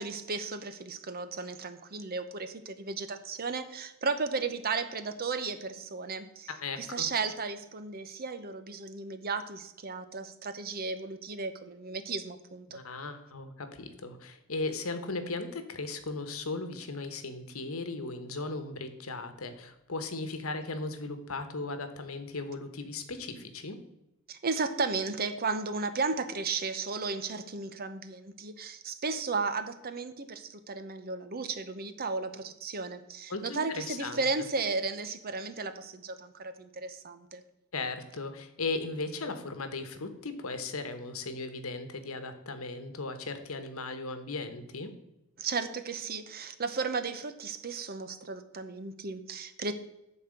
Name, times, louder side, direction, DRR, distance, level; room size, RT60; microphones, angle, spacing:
voice 1, 0.0-6.5 6.8-12.8 24.3-37.4 45.4-49.7, right 4 dB, 45° right, 10 dB, 0.8 m, -34 dB
voice 2, 6.5-7.1 12.7-23.8 33.3-34.2 37.7-44.9, left 3 dB, 75° left, 9 dB, 1.2 m, -37 dB
11.0 x 4.3 x 7.7 m, 0.90 s
head